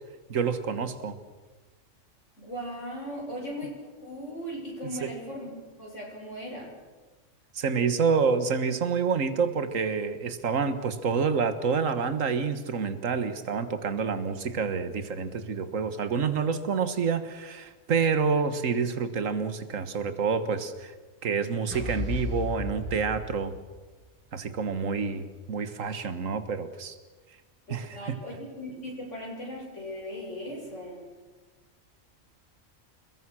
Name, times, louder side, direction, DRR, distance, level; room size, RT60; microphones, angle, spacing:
voice 1, 0.3-1.2 5.0-5.1 7.5-20.9 21.2-23.5 24.3-27.0 27.7-28.2, right 5 dB, 70° right, 11 dB, 1.9 m, -28 dB
voice 2, 2.4-5.5 5.8-6.7 24.8-25.0 27.7-31.1, equal, 60° left, -2 dB, 6.8 m, -38 dB
sound 1, 21.7-24.0, left 4 dB, 10° right, 7.3 m, -35 dB
28.5 x 22.0 x 6.3 m, 1.2 s
omnidirectional pair, 1.4 m